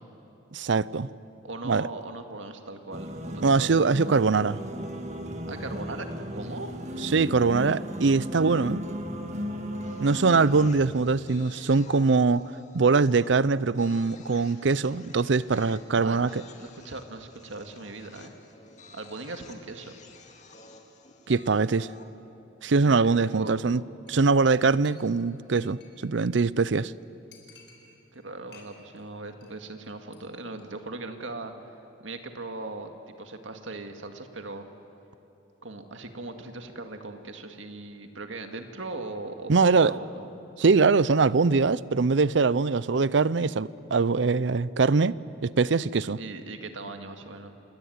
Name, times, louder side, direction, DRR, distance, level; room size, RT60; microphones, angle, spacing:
voice 1, 0.5-1.1 1.6-1.9 3.4-4.6 7.0-8.8 10.0-12.4 12.7-16.3 21.3-21.9 22.6-23.8 24.1-26.9 39.5-39.9 40.6-45.1 45.4-46.2, right 4 dB, 70° right, 0.6 m, -22 dB
voice 2, 1.4-3.9 5.5-6.8 15.9-18.3 18.9-19.9 22.8-23.5 28.1-31.5 32.0-34.7 35.6-40.3 46.1-47.5, right 2 dB, 85° right, 2.0 m, -39 dB
sound 1, 2.9-10.7, equal, 35° right, 1.7 m, -35 dB
sound 2, 9.8-22.1, left 3 dB, 40° left, 2.2 m, -52 dB
Chink clink, 24.1-24.3 24.5-24.6 24.9-26.2 26.5-26.6 26.8-26.9 27.3-28.2 28.5-29.0 29.3-29.6 29.8-30.2 30.5-30.6, left 5 dB, 60° left, 4.4 m, -55 dB
28.0 x 21.0 x 9.6 m
head